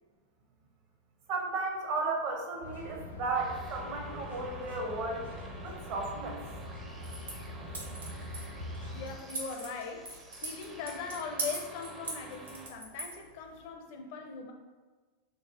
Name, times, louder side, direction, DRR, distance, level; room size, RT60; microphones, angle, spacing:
voice 1, 1.3-5.3 5.6-6.4, right 3 dB, 45° right, 1 dB, 0.8 m, -34 dB
sound 1, 2.6-9.2, left 1 dB, 80° left, 0.8 m, -43 dB
sound 2, 3.3-12.7, right 2 dB, 10° right, 0.5 m, -50 dB
sound 3, 6.9-13.7, right 2 dB, 75° right, 0.9 m, -42 dB
voice 2, 8.9-14.5, left 5 dB, 50° left, 3 dB, 0.5 m, -41 dB
4.1 x 2.3 x 3.5 m, 1.3 s
figure-of-eight pair, 90°, 0 cm